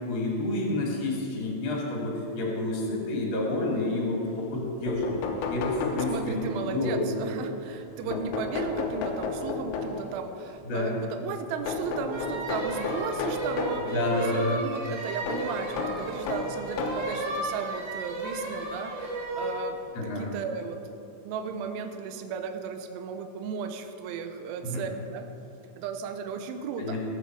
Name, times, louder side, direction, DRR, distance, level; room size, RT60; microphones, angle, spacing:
voice 1, 0.1-5.2 5.5-7.4 8.1-8.2 10.6-11.0 13.9-14.6 19.9-20.2 24.6-24.8 26.8-27.0, left 2 dB, 40° left, -3 dB, 1.8 m, -29 dB
sound 1, 4.6-4.7 4.9-6.6 8.1-10.2 11.7-13.9 15.3-17.1 18.0-18.1 19.4-19.5 19.9-20.0, left 4 dB, 85° left, 3.7 m, -32 dB
voice 2, 5.9-25.3 25.8-27.0, right 6 dB, 80° right, 7 dB, 2.9 m, -35 dB
sound 2, 12.1-19.6, right 2 dB, 50° right, 2.6 m, -34 dB
19.0 x 6.9 x 4.6 m, 2.8 s
omnidirectional pair, 5.9 m